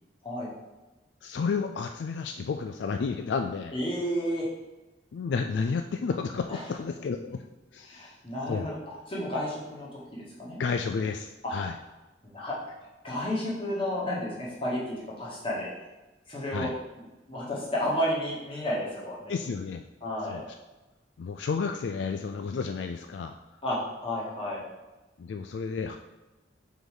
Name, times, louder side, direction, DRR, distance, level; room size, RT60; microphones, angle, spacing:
voice 1, 1.2-3.7 5.1-7.4 7.7-8.2 8.5-8.7 10.6-11.8 16.5-16.7 19.3-19.8 20.3-20.4 21.2-23.3 25.2-26.0, left 5 dB, 70° left, 6 dB, 0.3 m, -31 dB
voice 2, 3.7-4.5 6.5-6.6 7.9-8.8 9.1-10.6 11.4-11.6 12.3-12.5 13.0-15.7 16.3-16.7 17.3-19.3 20.0-20.4 23.6-24.6, equal, 30° left, -6 dB, 1.9 m, -31 dB
5.1 x 3.9 x 4.9 m, 1.1 s
head